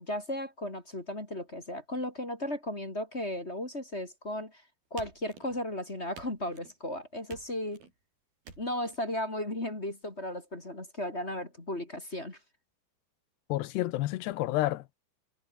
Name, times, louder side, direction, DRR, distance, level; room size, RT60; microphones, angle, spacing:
voice 1, 0.0-4.6 4.9-7.8 8.6-12.4, left 1 dB, 20° left, 2.8 m, -35 dB
sound 1, 5.0-5.7 6.1-6.8 7.3-7.9 8.4-9.0, right 5 dB, 65° right, 7.4 m, -50 dB
voice 2, 13.5-15.0, left 16 dB, 85° left, 3.1 m, -30 dB
omnidirectional pair, 4.8 m